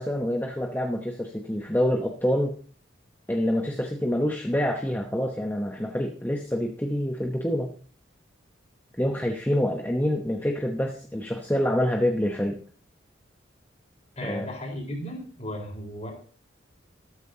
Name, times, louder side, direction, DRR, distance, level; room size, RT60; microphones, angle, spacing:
voice 1, 0.0-2.6 3.3-7.7 9.0-12.6 14.2-14.5, equal, 10° left, 3 dB, 0.9 m, -26 dB
voice 2, 14.2-16.1, left 1 dB, 35° left, -1 dB, 4.4 m, -35 dB
13.5 x 13.0 x 2.8 m, 0.43 s
head